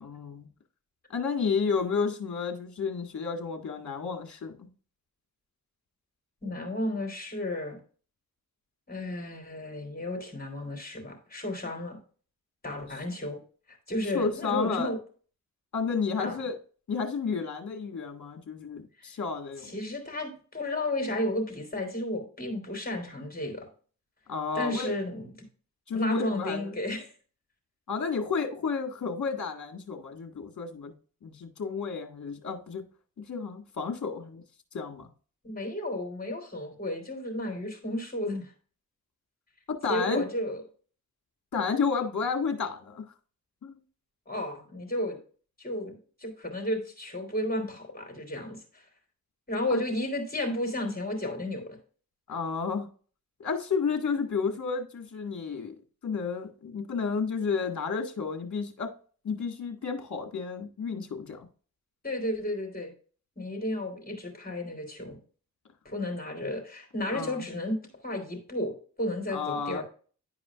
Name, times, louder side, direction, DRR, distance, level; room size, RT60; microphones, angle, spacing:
voice 1, 0.0-0.5 1.1-4.7 14.1-14.9 15.7-16.6 16.9-19.8 24.3-24.9 25.9-26.7 27.9-30.9 31.2-32.8 33.3-34.4 34.7-35.1 39.7-40.2 41.5-43.1 43.6-43.8 49.7-49.8 52.3-52.9 53.4-55.7 56.0-58.9 59.2-61.5 67.1-67.5 69.3-69.8, left 5 dB, 50° left, 1.8 m, -31 dB
voice 2, 6.4-7.8 8.9-12.0 12.6-13.4 13.7-15.0 16.2-16.4 19.6-23.7 24.5-25.3 25.9-27.1 35.4-38.5 39.9-40.6 44.3-45.2 45.6-45.9 46.2-48.8 49.5-51.8 62.0-62.9 63.4-65.2 65.8-67.8 68.0-69.8, left 1 dB, 25° left, 3.2 m, -33 dB
10.5 x 4.9 x 2.4 m
cardioid pair, 55°, 36 cm